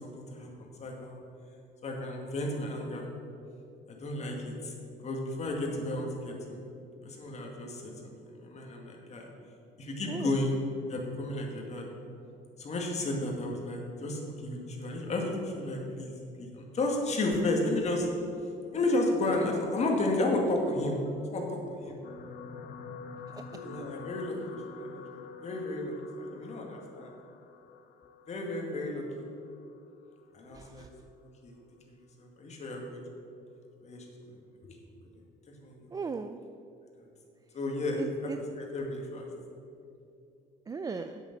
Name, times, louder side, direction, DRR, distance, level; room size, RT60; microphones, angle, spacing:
voice 1, 0.0-1.2 1.8-3.1 3.9-4.7 5.0-6.6 7.0-8.1 8.4-9.3 9.8-10.6 10.9-11.9 12.6-16.1 16.4-18.1 18.7-21.0 21.3-22.0 23.5-27.1 28.3-29.1 30.3-30.9 31.4-31.6 31.9-33.0 33.8-34.4 34.6-34.8 35.6-35.8 37.5-38.3 38.6-39.3, left 2 dB, 40° left, 0 dB, 2.1 m, -33 dB
sound 1, 22.0-30.5 31.3-31.5 31.8-31.9, left 5 dB, 70° left, 0.9 m, -47 dB
voice 2, 30.5-30.9 35.9-36.4 38.0-38.4 40.7-41.2, right 5 dB, 20° right, 8 dB, 0.3 m, -37 dB
8.1 x 6.8 x 7.3 m, 2.6 s
cardioid pair, 110°, 17 cm